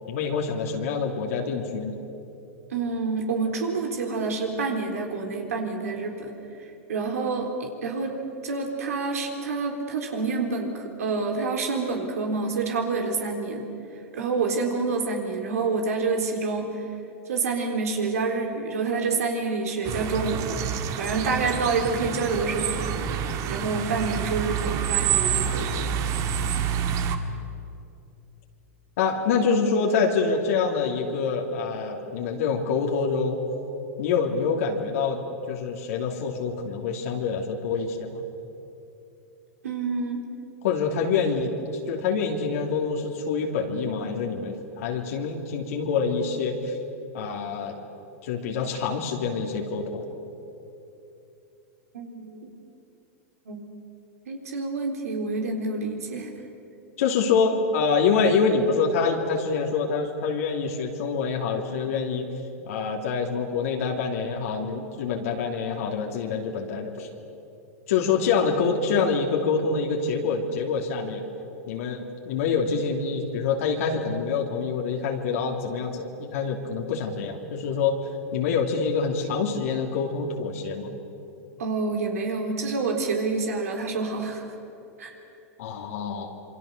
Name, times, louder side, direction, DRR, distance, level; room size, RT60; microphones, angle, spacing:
voice 1, 0.1-2.0 29.0-33.4 34.0-38.2 40.6-41.5 41.9-46.7 47.1-47.8 48.2-50.1 57.0-62.3 62.7-67.1 67.9-71.2 71.7-80.9 85.6-86.3, left 5 dB, 70° left, 1 dB, 2.9 m, -26 dB
voice 2, 2.7-6.3 6.9-8.2 8.4-13.7 14.1-16.8 17.3-20.6 21.0-23.2 23.5-25.9 39.6-40.2 51.9-52.5 53.5-53.7 54.3-56.3 81.6-84.5 85.0-85.1, right 4 dB, 80° right, 2 dB, 4.0 m, -28 dB
sound 1, 19.8-27.2, right 8 dB, 45° right, 1.8 m, -28 dB
27.0 x 23.5 x 6.8 m, 2.9 s
hypercardioid pair, 110°, 8 cm